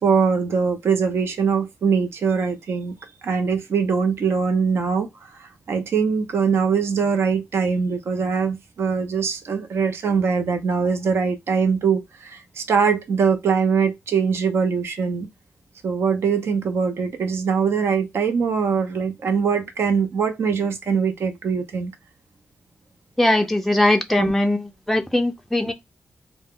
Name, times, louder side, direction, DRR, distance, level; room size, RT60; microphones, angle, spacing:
voice 1, 0.0-2.9 3.2-15.3 15.8-21.9 24.2-24.3, right 6 dB, 85° right, 0.5 m, -22 dB
voice 2, 23.2-25.7, left 1 dB, 5° left, 0.3 m, -20 dB
2.0 x 2.0 x 3.5 m
wide cardioid pair, 130°, 4 cm